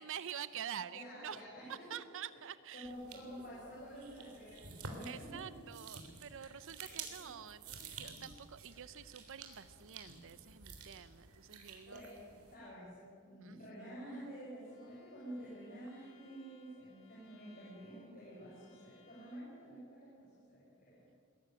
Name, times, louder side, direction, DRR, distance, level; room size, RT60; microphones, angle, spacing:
voice 1, 0.0-1.4 1.7-2.9 5.1-12.0 13.4-13.9, right 9 dB, 60° right, 15 dB, 0.6 m, -47 dB
voice 2, 0.9-2.1 2.7-5.7 7.1-7.3 11.9-21.0, equal, 40° left, -6 dB, 5.8 m, -50 dB
sound 1, 2.8-12.5, right 4 dB, 75° right, 3.3 m, -51 dB
Bowed string instrument, 14.6-19.6, left 2 dB, 65° left, 2.6 m, -66 dB
21.0 x 14.0 x 9.9 m, 2.2 s
head